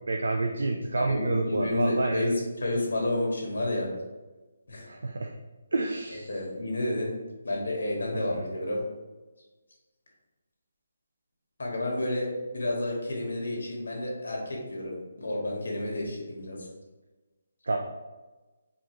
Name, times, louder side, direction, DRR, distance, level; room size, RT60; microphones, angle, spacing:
voice 1, 0.1-2.4 4.9-5.3 5.7-6.3 8.1-8.4 17.6-17.8, right 2 dB, 80° right, 2 dB, 0.4 m, -28 dB
voice 2, 0.9-2.3 2.6-3.9 4.7-4.8 6.3-7.1 7.4-8.8 11.6-12.3 12.5-16.7, left 1 dB, 75° left, -1 dB, 1.4 m, -30 dB
4.4 x 2.9 x 3.1 m, 1.2 s
hypercardioid pair, 175°, 0 cm